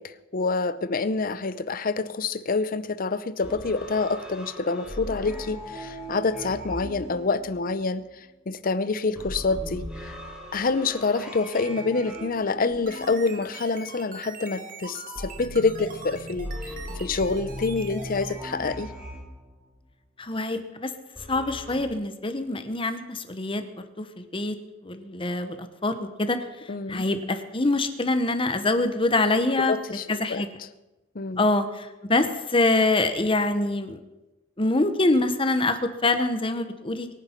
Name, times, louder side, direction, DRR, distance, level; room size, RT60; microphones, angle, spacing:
voice 1, 0.0-8.0 8.5-10.2 10.5-16.7 17.0-18.9 26.7-27.1 29.7-30.4 31.1-31.5, left 4 dB, 50° left, 14 dB, 0.7 m, -27 dB
sound 1, 3.4-8.0 9.1-13.9 15.2-19.8 21.2-21.8, equal, 5° right, 3.0 m, -39 dB
sound 2, 12.6-18.4, right 3 dB, 45° right, 2.0 m, -42 dB
voice 2, 20.2-20.9 21.3-23.6 24.0-24.6 24.8-26.4 26.9-29.7 30.1-30.5 31.4-34.0 34.6-37.1, left 2 dB, 30° left, 9 dB, 1.0 m, -25 dB
23.5 x 9.9 x 4.5 m, 1.0 s
head